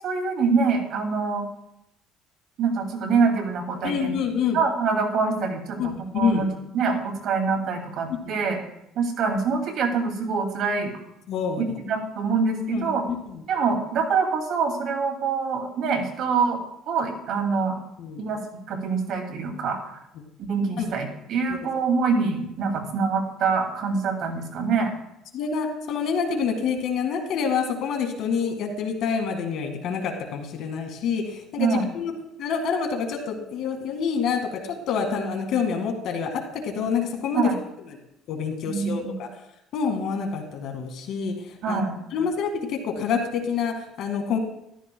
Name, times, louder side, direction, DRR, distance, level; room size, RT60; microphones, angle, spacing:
voice 1, 0.0-1.5 2.6-4.1 4.5-6.5 6.7-8.6 9.0-10.9 11.8-13.0 13.5-16.6 16.9-17.8 18.2-18.4 18.7-20.0 20.4-24.9 31.6-31.8 37.3-37.5 38.6-39.2 41.6-42.0, right 5 dB, 60° right, 3 dB, 2.6 m, -25 dB
voice 2, 3.8-4.6 5.8-5.9 6.1-6.4 8.1-8.4 11.3-11.7 12.7-12.9 13.3-13.4 18.0-18.2 20.8-20.9 21.5-21.7 25.3-32.1 32.4-37.5 37.9-38.0 38.3-39.3 39.7-41.8 42.1-44.4, left 6 dB, 65° left, 4 dB, 2.0 m, -27 dB
14.0 x 12.5 x 2.3 m, 0.82 s
cardioid pair, 120°, 0 cm